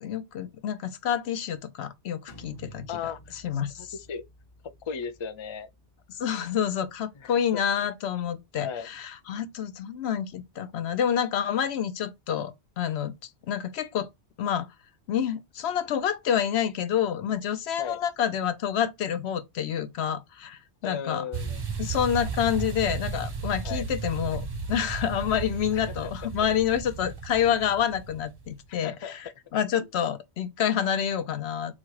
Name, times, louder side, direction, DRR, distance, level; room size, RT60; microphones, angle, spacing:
voice 1, 0.0-3.9 6.2-13.1 13.5-14.1 14.4-14.7 15.1-21.2 21.8-31.7, left 9 dB, 75° left, 0.9 m, -28 dB
sound 1, 2.3-7.9, right 1 dB, 25° left, 0.8 m, -53 dB
voice 2, 2.9-3.3 3.8-4.2 4.9-5.7 7.1-7.3 8.6-8.9 17.8-18.0 20.8-21.6 23.6-23.9 25.7-26.1 28.8-29.2, left 6 dB, 50° left, 0.3 m, -36 dB
sound 2, 21.3-28.5, right 5 dB, 30° right, 0.5 m, -34 dB
4.1 x 2.4 x 4.6 m
omnidirectional pair, 1.1 m